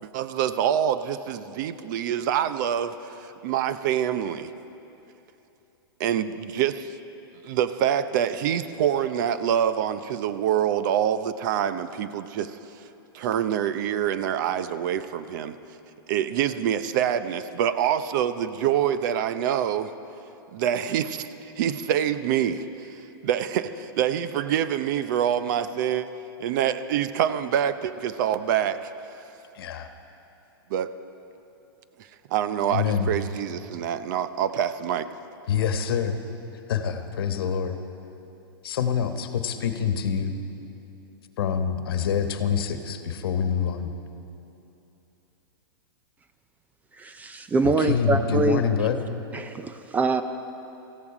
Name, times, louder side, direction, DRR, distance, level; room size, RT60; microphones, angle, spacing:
voice 1, 0.0-4.5 6.0-6.9 7.4-12.6 13.1-15.6 16.1-19.9 20.5-21.3 21.6-26.1 26.4-28.9 30.7-30.9 32.3-35.1, right 9 dB, 50° right, 12 dB, 0.6 m, -26 dB
voice 2, 29.5-29.9 32.7-33.1 35.5-36.2 36.7-37.8 38.6-40.4 41.4-43.9 47.6-49.0, left 7 dB, 70° left, 7 dB, 1.2 m, -26 dB
voice 3, 47.0-48.6 49.3-50.2, right 4 dB, 10° right, 9 dB, 0.4 m, -24 dB
18.0 x 15.0 x 4.9 m, 2.9 s
hypercardioid pair, 145°, 13 cm